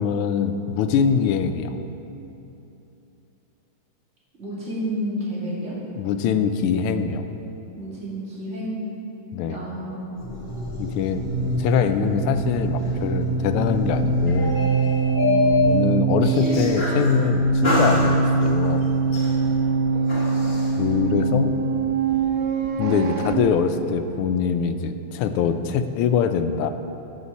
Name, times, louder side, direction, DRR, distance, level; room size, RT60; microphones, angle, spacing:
voice 1, 0.0-1.8 6.0-7.2 9.3-9.6 10.8-11.2 11.6-14.6 15.6-18.9 20.8-21.5 22.8-26.7, left 7 dB, 85° left, 9 dB, 1.5 m, -23 dB
voice 2, 4.4-5.7 7.7-8.8 9.5-10.1 15.2-15.7, equal, 30° right, -7 dB, 2.9 m, -30 dB
sound 1, 10.2-17.1 17.6-18.6 19.1-20.7, left 3 dB, 30° left, 1.5 m, -27 dB
sound 2, 10.5-23.3, right 4 dB, 75° right, 0.8 m, -23 dB
14.5 x 8.1 x 4.2 m, 3.0 s
omnidirectional pair, 2.4 m